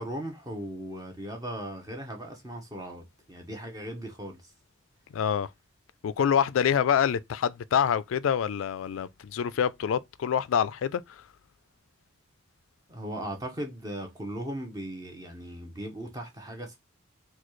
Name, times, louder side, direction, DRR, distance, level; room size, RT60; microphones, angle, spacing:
voice 1, 0.0-4.5 12.9-16.8, right 1 dB, 20° right, 0.8 m, -38 dB
voice 2, 5.1-5.5 6.0-11.2, left 8 dB, 85° left, 0.3 m, -26 dB
4.0 x 2.3 x 3.0 m
head